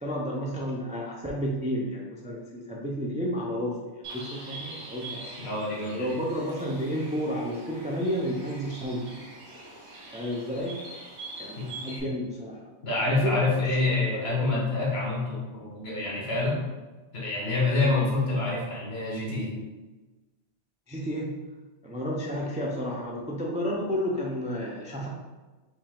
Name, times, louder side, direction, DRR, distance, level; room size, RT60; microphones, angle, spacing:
voice 1, 0.0-5.3 5.9-9.2 10.1-10.8 11.4-12.7 13.1-13.5 13.8-13.9 14.1-14.5 17.8-18.0 20.9-21.3 21.8-25.1, equal, 10° right, -2 dB, 0.3 m, -31 dB
Bird, 4.0-12.0, right 2 dB, 75° right, 1.5 m, -43 dB
voice 2, 5.4-6.1 11.6-11.7 12.8-16.6 17.1-19.6, left 3 dB, 65° left, -4 dB, 1.5 m, -27 dB
4.8 x 2.8 x 3.7 m, 1.2 s
omnidirectional pair, 1.2 m